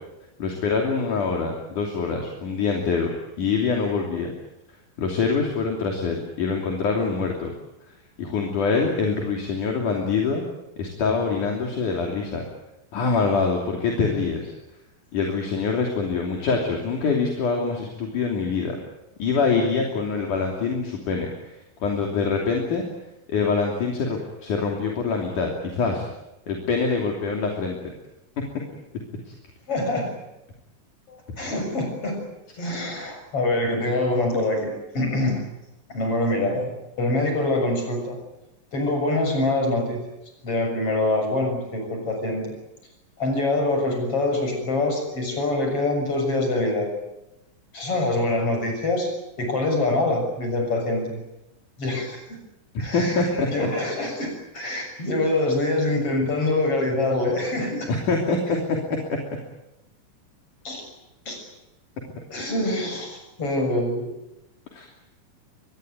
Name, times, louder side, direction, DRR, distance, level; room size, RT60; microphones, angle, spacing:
voice 1, 0.4-4.3 5.0-7.5 8.2-10.4 10.8-12.4 12.9-14.5 15.1-18.8 19.2-22.8 23.3-26.1 26.5-27.8 52.9-53.7 57.9-58.8 59.1-59.2 64.7-64.9, left 4 dB, 60° left, 1 dB, 4.4 m, -25 dB
voice 2, 29.7-30.1 31.1-32.2 32.6-35.4 35.9-38.2 38.7-40.0 40.4-42.5 43.2-46.9 47.7-49.1 49.4-51.2 51.8-52.2 52.8-57.9 60.6-60.8 61.3-61.4 62.3-64.1, left 2 dB, 40° left, 4 dB, 7.8 m, -25 dB
24.0 x 21.0 x 9.4 m, 0.93 s
omnidirectional pair, 4.0 m